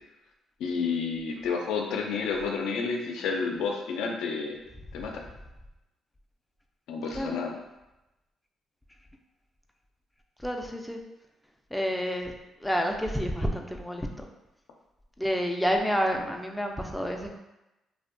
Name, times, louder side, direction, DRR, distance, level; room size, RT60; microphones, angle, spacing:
voice 1, 0.6-4.5 4.9-5.2 6.9-7.5, left 5 dB, 85° left, 1 dB, 0.4 m, -30 dB
voice 2, 10.4-11.0 11.7-12.3 12.6-14.3 15.2-17.4, equal, 5° left, 2 dB, 0.3 m, -29 dB
2.6 x 2.1 x 2.5 m, 0.97 s
cardioid pair, 90°, 0 cm